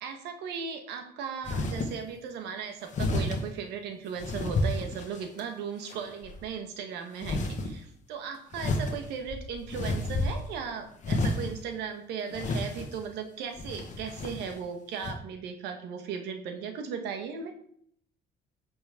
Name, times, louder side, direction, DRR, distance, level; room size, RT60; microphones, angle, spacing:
voice 1, 0.0-17.5, right 6 dB, 85° right, 5 dB, 1.5 m, -37 dB
sound 1, 1.4-1.9 2.9-3.4 4.2-5.4 5.9-6.4 7.2-7.7 8.5-10.6 11.0-11.6 12.3-13.0 13.6-14.5 15.0-15.1, left 2 dB, 45° left, 1.5 m, -31 dB
10.0 x 6.4 x 3.7 m, 0.65 s
cardioid pair, 110°, 17 cm